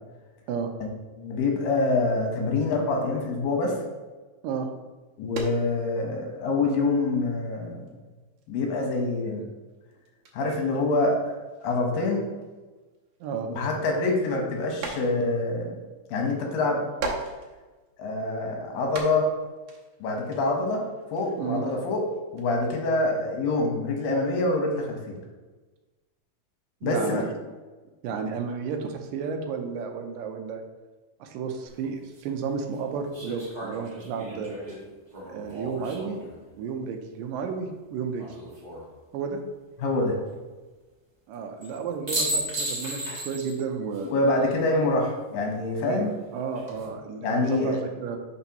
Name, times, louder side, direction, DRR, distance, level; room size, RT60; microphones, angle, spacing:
voice 1, 1.2-3.7 5.2-7.9 8.5-9.4 10.3-12.3 13.5-15.8 16.1-16.9 18.0-19.3 20.0-20.8 21.1-22.0 22.3-25.2 26.8-27.2 39.8-40.2 44.1-46.1 47.2-47.8, left 2 dB, 85° left, 1 dB, 2.9 m, -26 dB
sound 1, 5.3-6.0 6.3-7.9 8.4-8.6 8.8-9.0 9.3-9.4 9.7-13.7 14.1-15.5 15.8-15.9 16.7-18.2 18.8-23.0, right 3 dB, 65° right, 1.7 m, -39 dB
voice 2, 26.8-27.4 28.0-30.6 31.2-34.5 35.3-36.2 36.5-38.3 39.1-39.4 41.3-44.1 45.8-48.2, right 5 dB, 85° right, 4 dB, 2.3 m, -32 dB
sound 2, 31.7-31.8 33.1-36.4 38.2-38.8 41.6-41.7 42.1-43.6 43.9-44.0 46.4-46.9, right 1 dB, 40° right, 0.5 m, -34 dB
11.0 x 4.4 x 3.0 m, 1.2 s
omnidirectional pair, 3.9 m